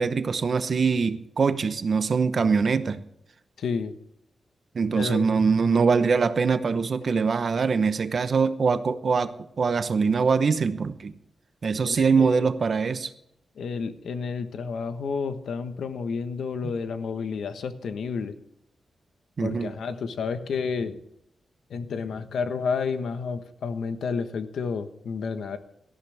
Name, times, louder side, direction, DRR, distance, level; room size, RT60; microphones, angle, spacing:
voice 1, 0.0-3.0 4.7-11.1 11.6-13.1 19.4-19.7, right 5 dB, 45° right, 11 dB, 0.9 m, -23 dB
voice 2, 3.6-3.9 4.9-5.3 11.8-12.4 13.6-18.3 19.4-21.0 21.7-25.6, left 5 dB, 85° left, 9 dB, 1.3 m, -30 dB
18.0 x 14.0 x 3.5 m, 0.77 s
wide cardioid pair, 150°, 0 cm